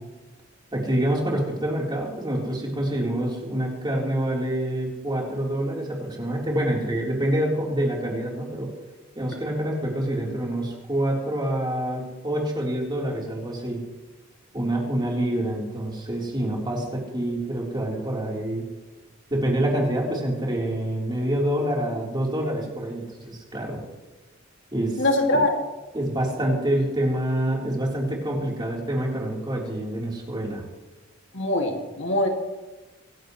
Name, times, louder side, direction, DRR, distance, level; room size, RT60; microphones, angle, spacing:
voice 1, 0.7-8.7 9.1-13.8 14.5-18.6 19.3-23.8 24.7-25.0 25.3-25.4 25.9-30.6, right 1 dB, 25° right, -2 dB, 3.7 m, -26 dB
voice 2, 25.0-25.5 31.3-32.3, left 1 dB, 65° left, 2 dB, 2.2 m, -22 dB
25.5 x 11.5 x 3.2 m, 1.1 s
head